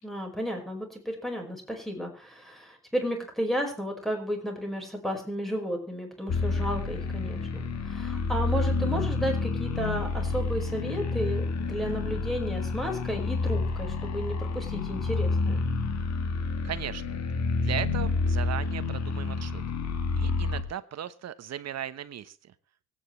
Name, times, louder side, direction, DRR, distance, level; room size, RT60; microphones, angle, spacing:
voice 1, 0.0-15.7, equal, ahead, 2 dB, 5.2 m, -33 dB
sound 1, 6.3-20.6, left 3 dB, 60° left, 2.0 m, -29 dB
voice 2, 16.6-17.0 17.6-19.6 20.2-22.5, right 10 dB, 60° right, 13 dB, 1.2 m, -37 dB
24.5 x 9.4 x 3.3 m, 0.33 s
cardioid pair, 90°, 30 cm